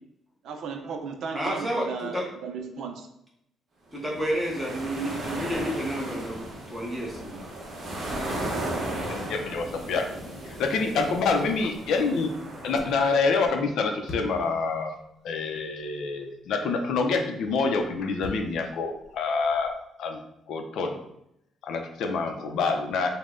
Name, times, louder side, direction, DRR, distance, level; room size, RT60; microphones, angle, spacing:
voice 1, 0.4-2.1 2.4-3.1, right 5 dB, 60° right, 5 dB, 0.5 m, -34 dB
voice 2, 1.3-2.3 3.9-7.4, equal, 5° right, -3 dB, 0.9 m, -30 dB
sound 1, 4.0-13.3, right 1 dB, 40° right, 0.9 m, -35 dB
voice 3, 9.1-10.1 10.4-12.3 12.6-14.9 15.2-20.2 20.5-21.0 21.6-23.1, left 4 dB, 65° left, 4 dB, 0.5 m, -27 dB
sound 2, 10.8-13.6 14.1-14.6 15.3-15.4 15.8-15.9 17.5-19.8, left 2 dB, 35° left, 0.9 m, -45 dB
5.3 x 2.1 x 3.7 m, 0.78 s
cardioid pair, 180°, 0 cm